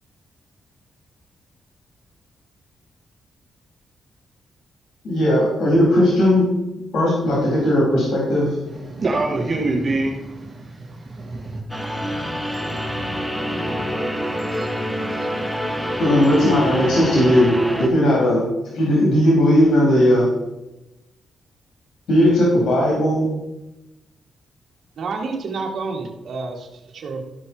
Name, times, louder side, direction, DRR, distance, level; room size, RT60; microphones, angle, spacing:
voice 1, 5.0-6.5 6.9-8.5 16.0-18.4 18.7-20.3 22.1-23.3, equal, 70° left, -5 dB, 4.0 m, -17 dB
voice 2, 8.7-11.6, right 2 dB, 45° right, -2 dB, 2.1 m, -25 dB
sound 1, 11.7-17.9, equal, 5° left, 1.6 m, -26 dB
voice 3, 25.0-26.7 26.9-27.2, right 4 dB, 65° right, 0 dB, 2.0 m, -29 dB
13.5 x 5.5 x 4.6 m, 0.95 s
cardioid pair, 80°, 0 cm